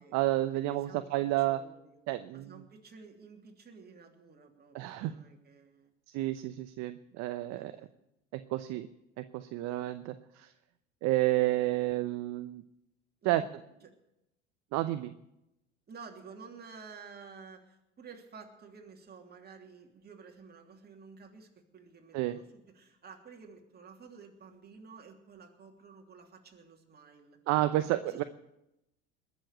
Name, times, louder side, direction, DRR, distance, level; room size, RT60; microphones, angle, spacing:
voice 1, 0.1-1.6 2.1-2.6 4.7-5.1 6.1-7.7 8.3-8.9 9.2-10.5 11.0-12.6 13.2-13.4 14.7-15.1 22.1-22.4 27.5-28.2, right 16 dB, 50° right, 11 dB, 0.8 m, -30 dB
voice 2, 0.7-1.1 1.4-2.0 2.3-5.9 7.5-7.9 13.2-13.5 13.8-13.9 15.9-27.4 28.0-28.2, right 5 dB, 25° right, 2 dB, 3.1 m, -52 dB
20.5 x 7.2 x 8.9 m, 0.86 s
hypercardioid pair, 80°, 35 cm